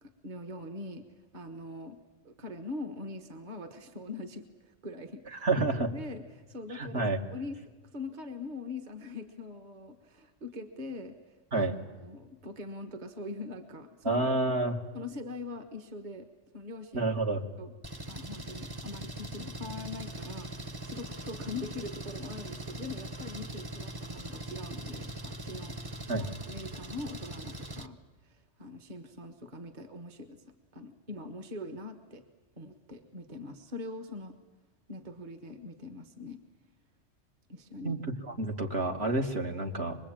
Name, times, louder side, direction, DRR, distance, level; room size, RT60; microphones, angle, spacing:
voice 1, 0.0-1.1 1.3-2.0 2.2-7.6 7.9-11.2 11.5-11.7 12.0-14.2 14.9-16.3 16.5-17.1 17.6-17.7 18.1-28.0 28.2-30.4 30.7-32.2 32.6-34.4 34.9-36.4 37.5-38.0, left 2 dB, 40° right, 6 dB, 1.4 m, -42 dB
voice 2, 5.3-5.9 6.7-7.2 11.5-11.7 14.0-14.8 16.9-17.5 26.1-26.3 37.8-40.0, right 2 dB, 55° right, 2 dB, 1.9 m, -29 dB
Engine, 17.8-27.9, right 1 dB, 20° right, 0.8 m, -41 dB
25.0 x 21.0 x 8.8 m, 1.3 s
omnidirectional pair, 1.3 m